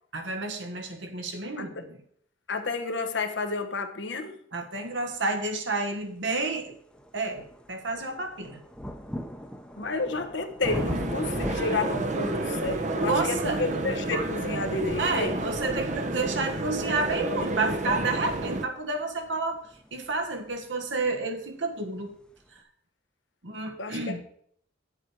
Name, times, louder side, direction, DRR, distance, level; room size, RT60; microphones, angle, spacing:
voice 1, 0.1-2.0 4.5-6.8 7.1-8.6 13.1-13.6 15.0-19.6 19.9-22.1 23.4-24.2, right 3 dB, 70° right, 1.5 m, -30 dB
voice 2, 2.5-4.4 9.8-15.4 23.8-24.2, left 3 dB, 70° left, 1.1 m, -31 dB
sound 1, 5.9-6.0 6.5-21.2 22.1-22.2, equal, 5° left, 0.8 m, -41 dB
sound 2, 10.6-18.6, right 2 dB, 40° right, 0.8 m, -30 dB
9.7 x 7.6 x 4.7 m
head